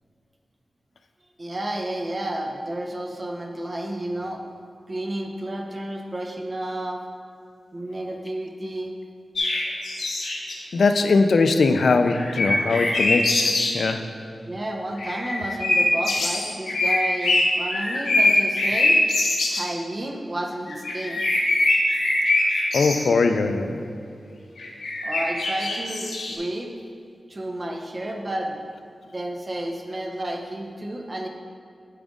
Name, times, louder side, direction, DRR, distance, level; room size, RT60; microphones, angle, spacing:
voice 1, 1.4-4.5 4.9-7.0 7.7-8.9 14.5-19.0 19.5-21.2 25.0-26.7 27.3-28.6 29.1-31.3, right 1 dB, 30° right, 2 dB, 0.7 m, -31 dB
sound 1, 9.4-10.6 12.1-13.8 15.0-19.6 20.7-23.1 24.6-26.4, left 2 dB, 90° left, 1.0 m, -23 dB
voice 2, 10.7-14.0 22.7-23.8, left 3 dB, 70° left, 7 dB, 0.4 m, -20 dB
8.7 x 5.1 x 3.7 m, 2.4 s
wide cardioid pair, 125°, 0 cm